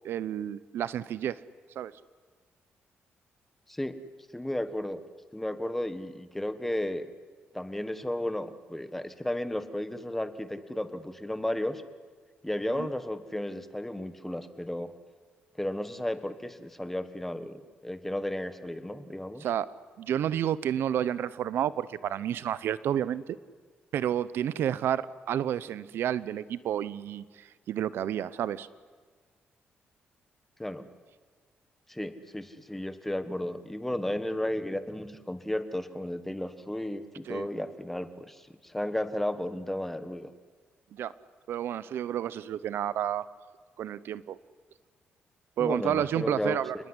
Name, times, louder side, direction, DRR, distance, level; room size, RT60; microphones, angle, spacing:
voice 1, 0.0-1.4 1.8-1.9 12.8-12.9 19.4-19.7 20.0-23.4 23.9-28.7 37.3-37.5 40.9-41.1 41.5-43.2 43.8-44.4 45.6-46.8, right 10 dB, 75° right, 17 dB, 0.8 m, -30 dB
voice 2, 4.3-5.0 5.3-7.1 7.5-11.8 12.4-14.9 15.6-19.4 30.6-30.8 31.9-40.3 45.6-46.6, left 1 dB, 5° left, 11 dB, 1.4 m, -33 dB
29.0 x 20.0 x 9.8 m, 1.5 s
cardioid pair, 135°, 4 cm